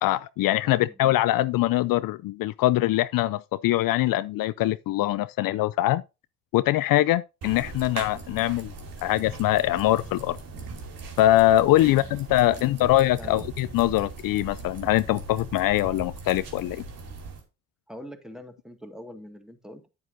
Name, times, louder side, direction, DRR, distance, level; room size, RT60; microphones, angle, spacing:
voice 1, 0.0-6.0 6.5-8.7 9.0-10.4 11.2-16.8, left 15 dB, 65° left, 0.5 m, -23 dB
voice 2, 0.6-1.0 11.8-12.8 13.2-13.4 17.9-19.9, equal, ahead, 1.9 m, -43 dB
sound 1, 7.4-17.4, right 3 dB, 65° right, 2.8 m, -40 dB
9.2 x 8.7 x 2.7 m
supercardioid pair, 70°, 36 cm